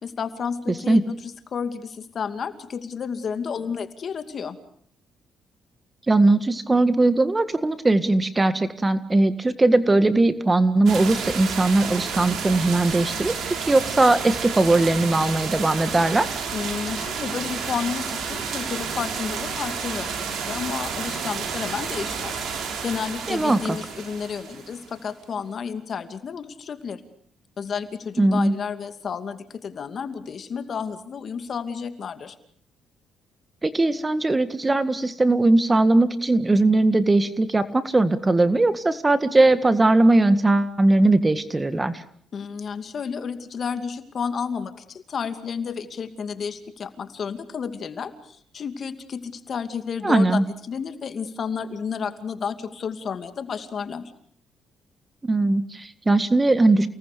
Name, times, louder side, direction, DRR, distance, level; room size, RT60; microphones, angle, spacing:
voice 1, 0.0-4.6 16.5-27.0 27.6-32.4 42.3-54.1, left 6 dB, 50° left, 9 dB, 2.5 m, -31 dB
voice 2, 6.1-13.3 13.7-16.3 23.3-23.8 28.2-28.5 33.6-42.0 50.0-50.4 55.2-56.9, right 2 dB, 20° right, 12 dB, 1.8 m, -19 dB
sound 1, 10.9-25.1, right 6 dB, 70° right, 5.6 m, -31 dB
29.5 x 19.0 x 6.8 m, 0.63 s
cardioid pair, 90°, 0 cm